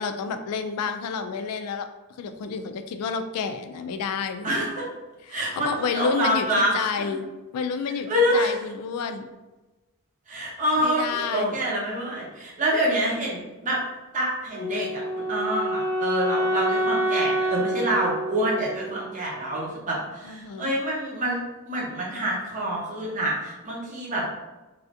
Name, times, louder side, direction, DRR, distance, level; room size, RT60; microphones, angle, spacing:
voice 1, 0.0-1.9 2.2-4.5 5.3-7.3 7.5-9.3 10.8-11.6 20.2-20.7, left 5 dB, 85° left, 8 dB, 0.3 m, -30 dB
voice 2, 4.4-4.8 5.3-7.2 8.1-8.5 10.3-13.8 14.1-21.4 21.7-24.3, right 1 dB, 35° right, -4 dB, 0.7 m, -26 dB
Wind instrument woodwind instrument, 14.6-19.6, right 1 dB, 40° left, 0.6 m, -27 dB
3.2 x 2.4 x 2.6 m, 1.1 s
head